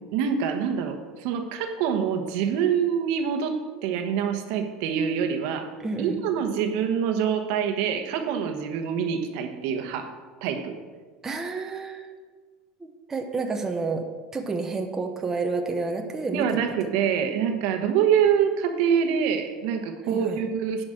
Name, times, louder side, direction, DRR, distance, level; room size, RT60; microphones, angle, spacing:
voice 1, 0.1-5.7 6.0-10.1 10.4-10.8 16.3-20.8, right 7 dB, 70° right, 6 dB, 1.2 m, -25 dB
voice 2, 5.8-6.2 11.2-12.2 12.8-14.1 14.3-16.7 20.0-20.4, right 3 dB, 15° right, 4 dB, 0.9 m, -30 dB
10.0 x 5.2 x 7.6 m, 1.5 s
supercardioid pair, 130°, 3 cm